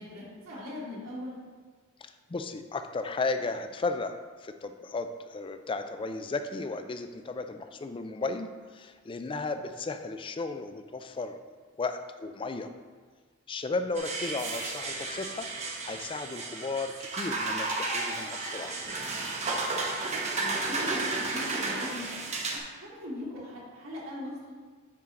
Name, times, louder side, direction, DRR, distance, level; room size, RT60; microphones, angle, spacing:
voice 1, 0.0-1.4 20.3-21.0 21.3-22.1 22.5-24.5, left 1 dB, 70° right, -6 dB, 1.9 m, -40 dB
voice 2, 2.0-11.4 11.8-12.7 13.5-15.5 15.8-18.8, left 3 dB, 25° left, 8 dB, 0.4 m, -34 dB
sound 1, 13.9-22.6, right 3 dB, 35° right, 0.8 m, -33 dB
9.5 x 4.5 x 3.7 m, 1.5 s
head